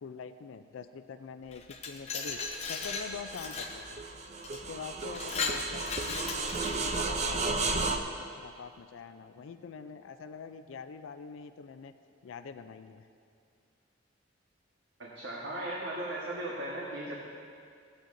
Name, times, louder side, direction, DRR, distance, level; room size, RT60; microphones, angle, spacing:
voice 1, 0.0-2.4 2.7-4.0 4.5-11.9 12.2-13.1, left 5 dB, 90° left, 9 dB, 0.4 m, -45 dB
Glass, 1.5-3.8 4.4-4.6 5.0-7.0, left 4 dB, 35° left, 0.7 m, -37 dB
sound 1, 2.3-8.0, right 3 dB, 35° right, 0.5 m, -34 dB
voice 2, 15.0-17.1, right 1 dB, 70° right, -5 dB, 1.4 m, -37 dB
16.5 x 8.9 x 2.6 m, 2.3 s
head